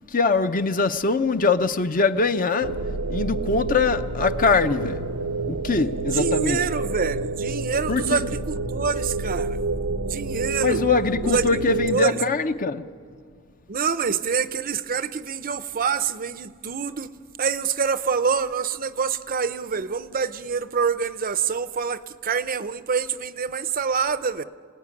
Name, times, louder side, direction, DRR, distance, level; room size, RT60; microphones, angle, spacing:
voice 1, 0.1-2.8 3.1-5.0 5.5-6.6 7.9-8.2 10.6-12.9, left 4 dB, 40° left, 0.7 m, -22 dB
sound 1, 2.6-11.9, right 3 dB, 80° right, 0.9 m, -28 dB
voice 2, 6.1-9.6 10.0-10.8 11.2-12.2 13.7-17.1 17.4-24.4, right 6 dB, 40° right, 0.6 m, -26 dB
27.0 x 18.0 x 9.8 m
head